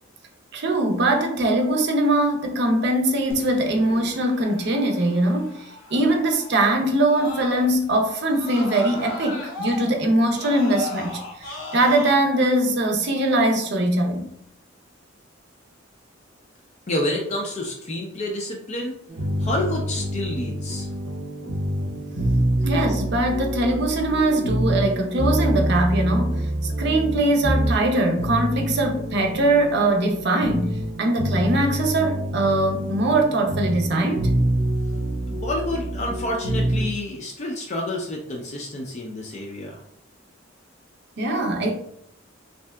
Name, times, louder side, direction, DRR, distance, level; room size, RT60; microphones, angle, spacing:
voice 1, 0.5-14.3 22.6-34.3 41.2-41.7, right 1 dB, 55° right, 0.5 m, -22 dB
Screaming, 3.3-7.9 8.3-12.1, left 2 dB, 75° left, 0.7 m, -37 dB
voice 2, 16.9-19.0 19.4-20.9 35.3-39.8, left 1 dB, 35° left, 0.4 m, -29 dB
sound 1, 19.1-36.9, right 1 dB, 90° right, 0.7 m, -26 dB
3.2 x 2.7 x 2.2 m
head